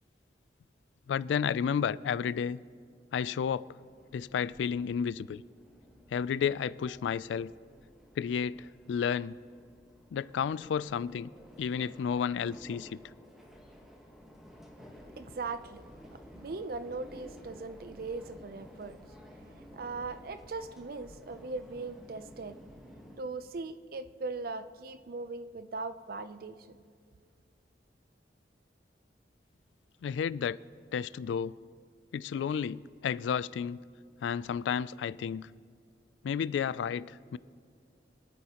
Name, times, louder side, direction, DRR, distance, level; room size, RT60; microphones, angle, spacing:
voice 1, 1.1-2.6 3.1-3.7 4.1-5.4 6.1-7.5 8.2-9.3 10.1-11.3 11.6-13.0 30.0-30.6 30.9-31.6 32.1-33.8 34.2-35.5 36.2-37.4, left 7 dB, 85° left, 0.3 m, -32 dB
sound 1, 3.8-23.2, equal, ahead, 1.3 m, -53 dB
voice 2, 15.2-15.9 16.1-19.0 19.3-22.6 23.2-26.8, right 3 dB, 55° right, 0.5 m, -39 dB
24.0 x 9.1 x 2.9 m
head